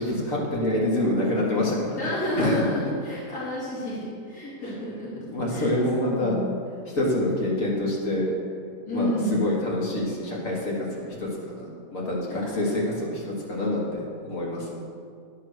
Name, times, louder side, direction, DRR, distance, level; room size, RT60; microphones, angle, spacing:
voice 1, 0.0-2.7 4.6-4.8 5.3-6.4 6.8-8.3 8.9-14.8, left 1 dB, 55° left, -4 dB, 2.0 m, -27 dB
voice 2, 2.0-5.1 5.5-6.9 8.8-9.5 12.3-12.5, left 1 dB, 90° left, -9 dB, 2.8 m, -30 dB
11.0 x 3.8 x 6.4 m, 2.2 s
omnidirectional pair, 1.7 m